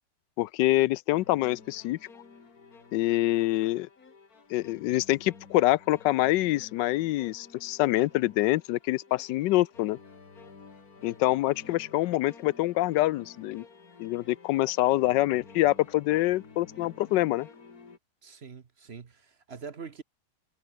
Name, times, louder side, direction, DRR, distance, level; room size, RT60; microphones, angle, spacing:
voice 1, 0.4-2.0 2.9-3.9 4.5-10.0 11.0-13.6 14.0-17.5, left 17 dB, 90° left, 1.2 m, -25 dB
sound 1, 1.1-18.0, left 4 dB, 55° left, 3.0 m, -52 dB
voice 2, 18.2-20.0, right 5 dB, 40° right, 1.2 m, -44 dB
omnidirectional pair, 1.8 m